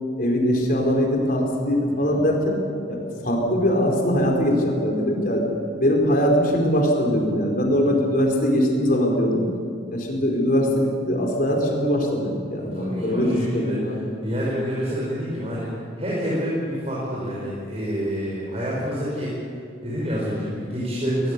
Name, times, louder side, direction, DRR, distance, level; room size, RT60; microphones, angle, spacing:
voice 1, 0.2-2.5 2.9-5.4 5.8-9.4 9.9-14.1, equal, 45° left, 0 dB, 4.7 m, -21 dB
voice 2, 1.9-2.2 7.8-8.1 12.5-13.8 14.2-15.7 16.0-19.3 19.8-21.3, equal, 35° right, -6 dB, 5.5 m, -28 dB
21.5 x 20.5 x 7.0 m, 2.3 s
head